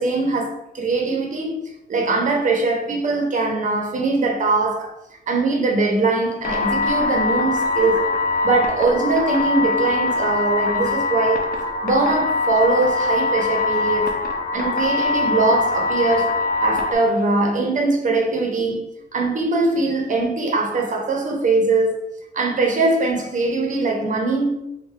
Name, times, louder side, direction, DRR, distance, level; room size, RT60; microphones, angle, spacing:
voice 1, 0.0-4.9 5.3-8.1 8.4-11.5 11.8-14.1 14.5-24.5, right 3 dB, 45° right, 1.1 m, -21 dB
sound 1, 6.4-16.9, left 3 dB, 60° left, 0.8 m, -22 dB
3.8 x 2.6 x 4.4 m
cardioid pair, 110°, 17 cm